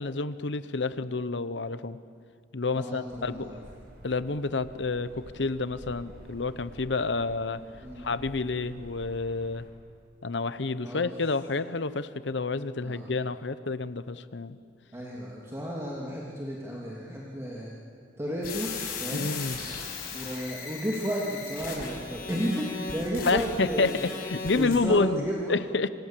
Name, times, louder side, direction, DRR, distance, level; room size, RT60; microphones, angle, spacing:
voice 1, 0.0-2.0 2.5-3.6 4.0-7.6 8.0-9.6 10.2-14.6 19.1-19.6 23.2-23.9 24.2-25.9, left 3 dB, 80° left, 14 dB, 0.9 m, -29 dB
voice 2, 2.7-3.6 7.8-8.1 10.8-11.0 12.8-13.1 14.9-17.7 18.2-18.7 19.0-19.3 20.1-24.1 24.5-25.6, equal, 15° right, -4 dB, 2.9 m, -33 dB
sound 1, 3.1-9.7, equal, 60° right, 5.6 m, -49 dB
sound 2, 18.4-24.8, left 4 dB, 60° left, 5.8 m, -37 dB
27.5 x 25.5 x 7.6 m, 2.1 s
head